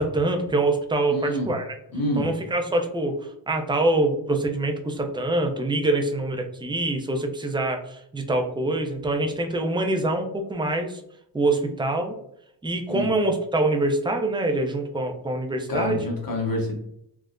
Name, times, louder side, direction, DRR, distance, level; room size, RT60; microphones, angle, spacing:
voice 1, 0.0-1.7 2.2-3.2 3.5-11.0 11.3-12.2 12.6-16.0, right 2 dB, 10° right, 4 dB, 0.4 m, -25 dB
voice 2, 1.1-1.5 1.9-2.3 12.9-13.1 15.7-16.8, left 1 dB, 50° left, -1 dB, 1.2 m, -27 dB
3.5 x 2.0 x 2.4 m, 0.74 s
cardioid pair, 50°, 45 cm